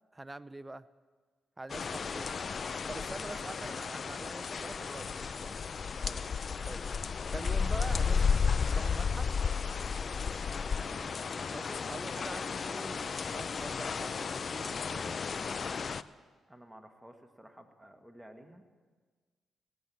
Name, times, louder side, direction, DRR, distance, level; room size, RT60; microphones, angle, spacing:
voice 1, 0.1-0.9 1.6-2.3 2.9-5.6 6.6-6.9 7.3-9.3 11.5-15.2, right 2 dB, 20° right, 17 dB, 0.5 m, -45 dB
sound 1, 1.7-16.0, left 5 dB, 50° left, 0.4 m, -33 dB
voice 2, 1.8-2.6 3.3-3.7 6.0-6.3 10.8-11.2 16.5-18.6, right 1 dB, 5° right, 4 dB, 1.7 m, -52 dB
17.5 x 7.8 x 7.1 m, 1.5 s
supercardioid pair, 55°, 0 cm